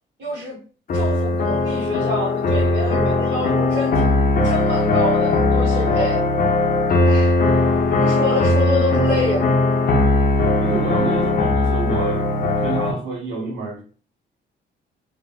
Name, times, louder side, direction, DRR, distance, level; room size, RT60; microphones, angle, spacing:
voice 1, 0.2-0.6 0.9-6.2 7.0-7.4 8.0-9.4, left 1 dB, 60° right, 1.1 m, -27 dB
sound 1, 0.9-12.9, left 2 dB, 45° left, 0.6 m, -19 dB
voice 2, 10.6-12.3 12.6-13.8, right 3 dB, 80° right, 1.0 m, -28 dB
3.3 x 2.1 x 2.3 m
cardioid pair, 90°, 20 cm